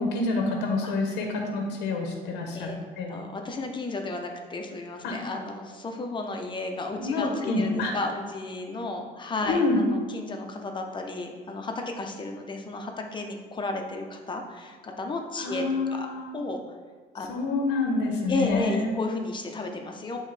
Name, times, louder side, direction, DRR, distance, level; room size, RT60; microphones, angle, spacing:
voice 1, 0.0-2.7 3.0-3.1 5.0-5.1 7.0-7.9 9.5-9.8 15.4-16.4 17.3-18.9, left 3 dB, 90° left, 2 dB, 0.9 m, -27 dB
voice 2, 3.1-15.6 15.9-16.1 16.3-16.6 17.1-17.5 18.3-20.2, left 2 dB, 30° left, 3 dB, 0.8 m, -33 dB
9.4 x 3.2 x 3.3 m, 1.5 s
cardioid pair, 110°, 17 cm